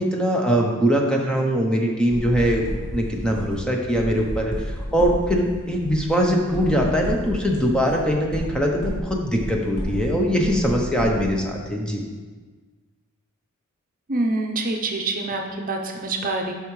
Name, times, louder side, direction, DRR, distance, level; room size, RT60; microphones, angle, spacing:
voice 1, 0.0-2.6 2.9-12.0, equal, 5° left, 0 dB, 0.7 m, -22 dB
sound 1, 2.1-11.3, equal, 70° left, 1.9 m, -32 dB
voice 2, 14.1-16.5, right 2 dB, 40° right, 2 dB, 0.7 m, -26 dB
8.7 x 5.7 x 3.1 m, 1.4 s
head